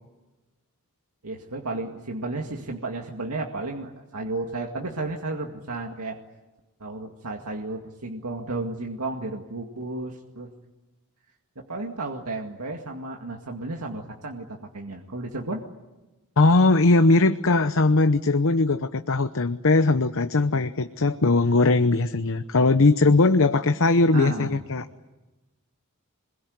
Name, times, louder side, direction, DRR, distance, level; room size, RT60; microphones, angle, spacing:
voice 1, 1.2-6.2 6.8-10.5 11.7-15.6 24.1-24.6, right 2 dB, 80° right, 1 dB, 2.1 m, -33 dB
voice 2, 16.4-24.9, left 3 dB, 65° left, 9 dB, 0.9 m, -20 dB
27.0 x 22.0 x 9.6 m, 1.1 s
head